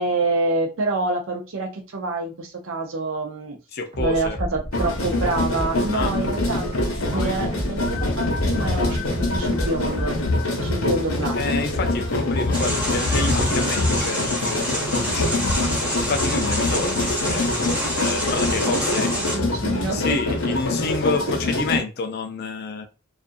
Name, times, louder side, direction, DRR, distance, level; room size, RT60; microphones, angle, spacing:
voice 1, 0.0-3.6 4.0-10.2 10.4-11.7 18.7-20.5 21.3-21.4, right 2 dB, 65° right, 0.6 m, -27 dB
voice 2, 3.7-4.4 5.9-6.2 11.4-15.6 16.0-17.5 17.9-19.1 19.7-22.9, left 4 dB, 50° left, 0.5 m, -28 dB
sound 1, 3.9-10.3, equal, 30° right, 0.8 m, -30 dB
sound 2, 4.7-21.8, left 2 dB, 80° left, 0.7 m, -25 dB
sound 3, 12.5-19.4, equal, 10° right, 1.1 m, -27 dB
2.4 x 2.4 x 2.5 m
head